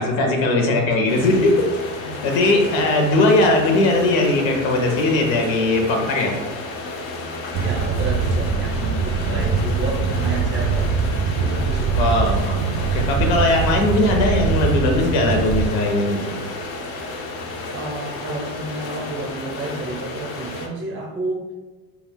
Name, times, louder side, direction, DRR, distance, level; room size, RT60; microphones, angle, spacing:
voice 1, 0.0-1.6 2.0-6.4 9.2-9.5 11.9-16.3, left 2 dB, 75° left, 2 dB, 0.8 m, -19 dB
sound 1, 1.1-20.7, left 2 dB, 35° left, 0.4 m, -32 dB
sound 2, 7.5-15.7, right 5 dB, 75° right, 0.5 m, -22 dB
voice 2, 7.6-11.0 11.4-12.1 17.7-21.5, right 2 dB, 30° right, -2 dB, 0.6 m, -30 dB
2.4 x 2.3 x 3.5 m, 1.2 s
cardioid pair, 135°, 42 cm